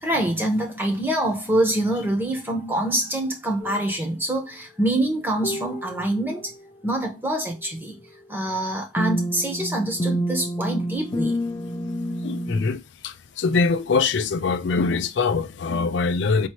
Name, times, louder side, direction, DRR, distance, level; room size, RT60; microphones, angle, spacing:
voice 1, 0.0-6.5 6.8-8.0 8.3-11.4, right 1 dB, 10° right, 1.0 m, -25 dB
sound 1, 3.6-3.8 5.4-6.5 9.0-12.7, equal, 20° left, 0.5 m, -28 dB
voice 2, 12.2-16.5, left 4 dB, 75° left, 0.4 m, -23 dB
4.4 x 2.8 x 2.9 m
head